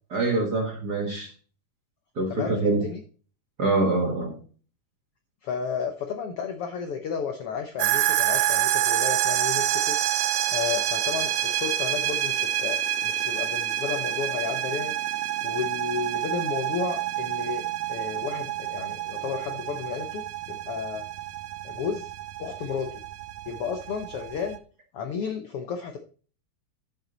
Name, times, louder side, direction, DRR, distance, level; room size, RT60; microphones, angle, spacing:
voice 1, 0.1-1.3 2.2-2.8 3.6-4.3, right 2 dB, 40° right, 1.6 m, -25 dB
voice 2, 2.3-3.0 5.4-10.0 10.5-14.9 15.4-20.2 20.5-21.0 21.6-22.1 22.4-23.0 23.5-24.6 24.9-26.0, left 6 dB, 70° left, 1.4 m, -32 dB
sound 1, 7.8-24.6, right 13 dB, 85° right, 2.2 m, -28 dB
10.5 x 7.0 x 3.9 m
omnidirectional pair, 3.6 m